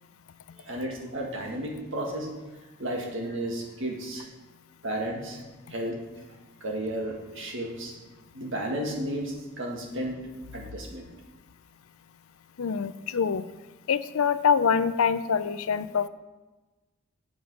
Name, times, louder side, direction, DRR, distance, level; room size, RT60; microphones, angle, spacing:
voice 1, 0.7-2.3 2.8-4.3 4.8-5.4 5.7-6.0 6.6-7.9 8.3-11.1, right 1 dB, 60° right, 0 dB, 1.9 m, -33 dB
voice 2, 12.6-13.4 13.9-16.1, left 6 dB, 80° left, 14 dB, 0.5 m, -25 dB
7.9 x 7.1 x 6.2 m, 1.2 s
head